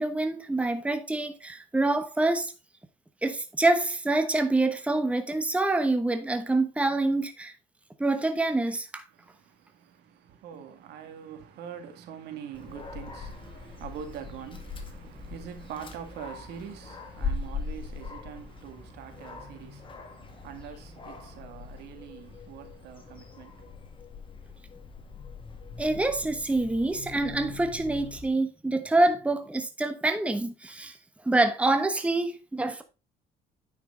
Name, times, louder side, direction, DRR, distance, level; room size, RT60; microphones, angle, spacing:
voice 1, 0.0-2.5 3.2-7.5 8.0-9.0 25.8-30.9 31.2-32.8, right 2 dB, 5° right, 1.0 m, -26 dB
voice 2, 9.1-23.8, right 8 dB, 80° right, 1.9 m, -44 dB
Dog, 12.5-28.3, left 4 dB, 30° left, 1.8 m, -41 dB
9.2 x 6.1 x 3.8 m
cardioid pair, 110°, 17 cm